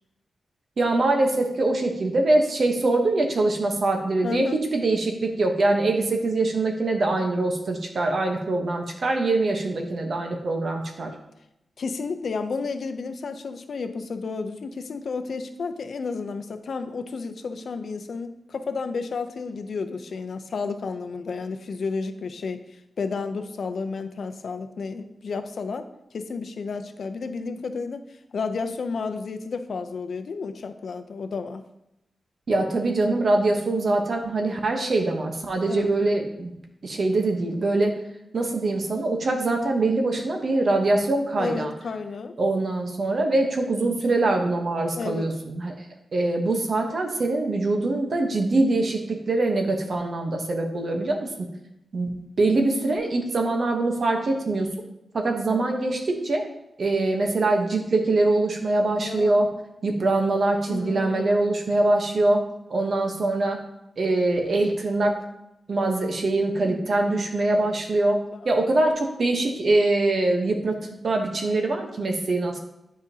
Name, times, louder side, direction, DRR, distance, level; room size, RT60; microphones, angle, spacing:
voice 1, 0.8-11.1 32.5-36.5 36.8-38.0 38.3-41.7 42.4-45.8 46.1-51.5 51.9-52.1 52.4-54.7 55.1-56.4 56.8-59.5 59.8-62.4 62.7-63.6 64.0-65.2 65.7-72.6, right 2 dB, 50° right, 3 dB, 0.9 m, -23 dB
voice 2, 4.2-4.6 11.8-22.6 23.0-25.9 26.1-31.6 35.7-36.0 41.4-42.4 44.9-45.3 59.0-59.5 60.7-61.3 66.7-66.8 68.3-68.5, left 4 dB, 60° left, 8 dB, 0.5 m, -32 dB
9.7 x 5.1 x 2.8 m, 0.86 s
wide cardioid pair, 155°, 0 cm